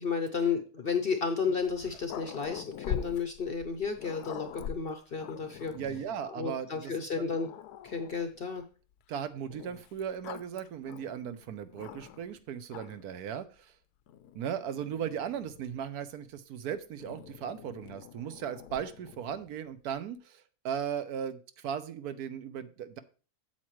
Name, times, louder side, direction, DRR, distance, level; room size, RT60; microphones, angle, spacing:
voice 1, 0.0-5.8 6.4-7.5 7.8-8.6, left 5 dB, 50° left, 7 dB, 0.7 m, -32 dB
Growling, 1.6-6.2 6.9-7.0 7.3-8.4 9.5-12.3 12.7-13.2 14.1-15.9 17.0-19.5, left 9 dB, 80° left, 1.1 m, -44 dB
voice 2, 5.7-7.4 9.1-13.7 14.3-23.0, right 8 dB, 75° right, 12 dB, 1.2 m, -37 dB
8.4 x 7.4 x 3.1 m, 0.36 s
omnidirectional pair, 1.7 m